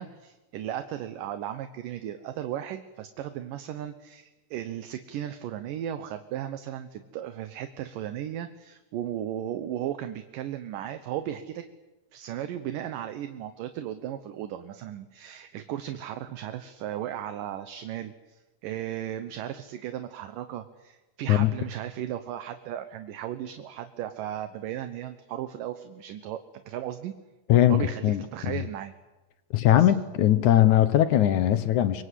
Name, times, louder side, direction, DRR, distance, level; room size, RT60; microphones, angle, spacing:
voice 1, 0.0-11.7 12.1-27.1 27.7-28.9 29.7-29.9, right 11 dB, 70° right, 2.4 m, -36 dB
voice 2, 27.5-28.2 28.5-28.6 29.5-32.0, left 12 dB, 65° left, 2.0 m, -20 dB
27.0 x 23.5 x 8.3 m
omnidirectional pair, 4.6 m